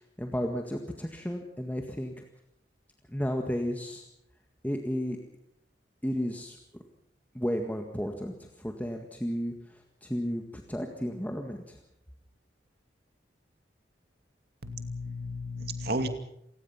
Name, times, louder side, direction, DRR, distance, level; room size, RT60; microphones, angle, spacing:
voice 1, 0.2-2.2 3.1-4.0 4.6-5.2 6.0-6.6 7.3-9.5 10.0-10.4 10.7-11.8, equal, 10° left, 3 dB, 1.8 m, -33 dB
voice 2, 14.6-16.1, equal, 60° right, 8 dB, 2.3 m, -33 dB
27.0 x 19.0 x 5.9 m, 0.76 s
head